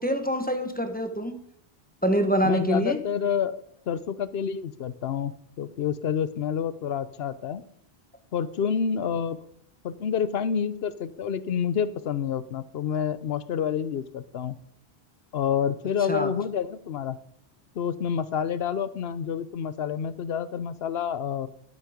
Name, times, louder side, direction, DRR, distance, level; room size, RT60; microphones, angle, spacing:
voice 1, 0.0-1.4 2.0-3.0 16.1-16.3, equal, 10° left, 6 dB, 1.1 m, -25 dB
voice 2, 2.4-3.5 3.9-5.3 5.6-7.6 8.3-9.4 9.8-14.6 15.3-17.2 17.8-21.5, left 7 dB, 75° left, 15 dB, 1.0 m, -28 dB
12.0 x 8.5 x 5.1 m, 0.67 s
omnidirectional pair, 1.0 m